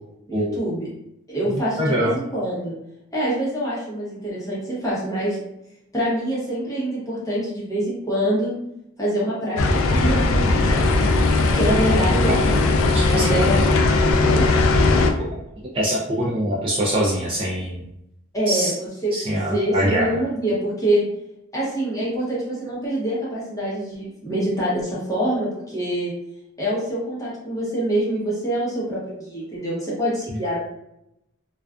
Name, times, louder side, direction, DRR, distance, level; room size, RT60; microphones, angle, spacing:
voice 1, 0.3-0.9 1.3-2.7 3.1-5.4 5.9-8.5 9.0-9.6 9.9-10.9 11.4-13.6 14.2-14.4 18.3-21.0 21.5-26.1 26.6-30.6, right 1 dB, 15° left, -8 dB, 0.8 m, -25 dB
voice 2, 1.8-2.2 12.9-13.5 15.7-17.8 18.5-18.7 19.1-20.1, equal, 25° right, -5 dB, 0.3 m, -23 dB
sound 1, 9.6-15.1, left 2 dB, 70° left, 0.3 m, -18 dB
2.3 x 2.2 x 2.3 m, 0.84 s
head